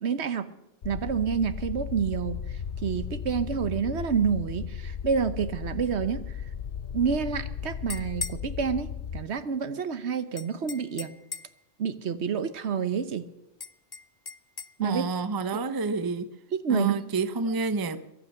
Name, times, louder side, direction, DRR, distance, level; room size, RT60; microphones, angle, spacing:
voice 1, 0.0-0.5 0.8-2.4 2.8-6.2 6.9-8.9 9.1-11.1 11.8-13.2 14.8-15.0 16.6-17.0, right 6 dB, 65° right, 1.2 m, -28 dB
sound 1, 0.8-9.2, left 7 dB, 55° left, 0.8 m, -36 dB
sound 2, 7.7-8.5 10.4-11.6 13.6-14.7, left 4 dB, 35° left, 0.4 m, -38 dB
voice 2, 14.8-16.3 16.7-18.1, right 3 dB, 25° right, 0.6 m, -29 dB
22.5 x 9.1 x 6.5 m
omnidirectional pair, 1.2 m